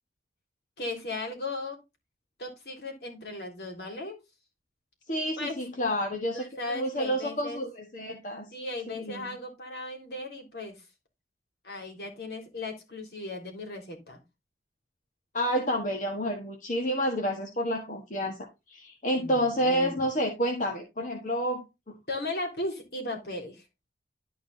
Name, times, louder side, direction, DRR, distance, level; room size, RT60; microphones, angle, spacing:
voice 1, 0.8-1.8 2.4-4.2 5.4-5.6 6.3-7.6 8.5-10.8 11.6-14.2 19.2-20.1 22.1-23.6, left 2 dB, 65° left, 2 dB, 3.3 m, -37 dB
voice 2, 5.1-6.4 6.7-8.5 8.9-9.2 15.3-21.6, equal, 45° left, 2 dB, 1.5 m, -29 dB
12.0 x 4.7 x 4.0 m, 0.24 s
head